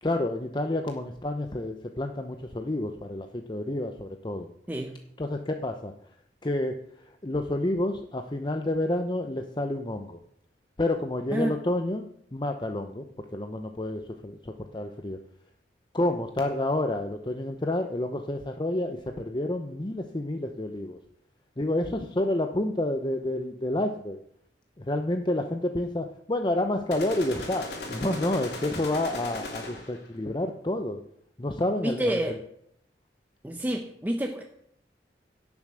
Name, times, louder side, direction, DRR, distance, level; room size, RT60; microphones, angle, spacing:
voice 1, 0.0-4.5 5.2-5.9 6.4-6.8 7.2-10.2 10.8-13.0 13.3-15.2 15.9-21.0 21.6-24.2 24.8-31.0 31.4-32.1, left 1 dB, 25° left, 5 dB, 0.8 m, -29 dB
voice 2, 4.7-5.0 11.3-11.6 31.8-32.4 33.4-34.4, right 1 dB, 10° right, 2 dB, 0.9 m, -28 dB
sound 1, 26.9-30.1, left 2 dB, 65° left, 3.1 m, -37 dB
17.0 x 7.1 x 6.3 m, 0.71 s
head